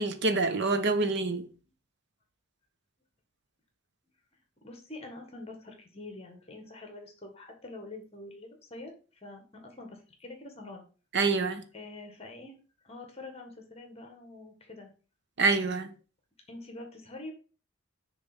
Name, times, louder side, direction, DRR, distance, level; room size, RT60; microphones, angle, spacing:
voice 1, 0.0-1.4 11.1-11.6 15.4-15.9, right 3 dB, 60° right, 0.9 m, -26 dB
voice 2, 4.6-8.9 9.2-10.8 11.7-12.6 12.8-14.9 16.5-17.3, left 2 dB, 30° left, 1.6 m, -45 dB
6.5 x 3.4 x 6.0 m
head